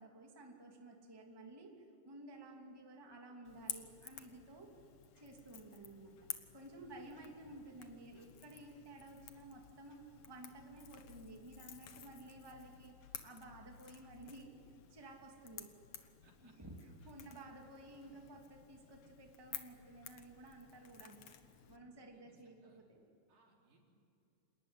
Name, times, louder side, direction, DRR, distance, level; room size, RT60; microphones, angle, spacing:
voice 1, 0.0-4.7 5.2-6.2 6.5-13.0 13.2-14.5 14.9-15.7 16.4-16.7 17.0-21.3 21.7-23.1, right 2 dB, 10° right, 1 dB, 2.2 m, -54 dB
Crackle / Crack, 3.4-21.8, left 9 dB, 55° left, 2.0 m, -53 dB
voice 2, 16.2-16.6 17.0-17.1 21.7-22.8 23.3-23.8, right 2 dB, 70° right, -1 dB, 5.7 m, -70 dB
27.5 x 19.5 x 9.9 m, 2.6 s
omnidirectional pair, 4.0 m